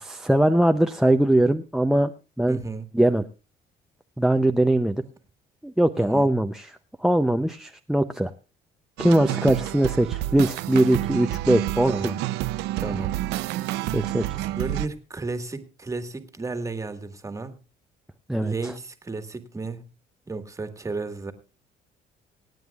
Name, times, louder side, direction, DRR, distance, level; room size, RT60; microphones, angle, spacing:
voice 1, 0.0-2.1 2.4-2.6 2.9-3.2 4.2-5.0 5.6-8.3 9.0-11.9 13.9-14.4 18.3-18.7, right 1 dB, 5° right, 10 dB, 0.5 m, -21 dB
voice 2, 2.5-2.9 6.0-6.3 11.9-12.2 12.8-13.1 14.4-17.5 18.4-19.9 20.3-21.3, right 3 dB, 20° right, 9 dB, 1.6 m, -33 dB
sound 1, 9.0-14.9, right 15 dB, 90° right, 0.6 m, -29 dB
25.0 x 9.2 x 2.4 m, 0.33 s
cardioid pair, 110°, 17 cm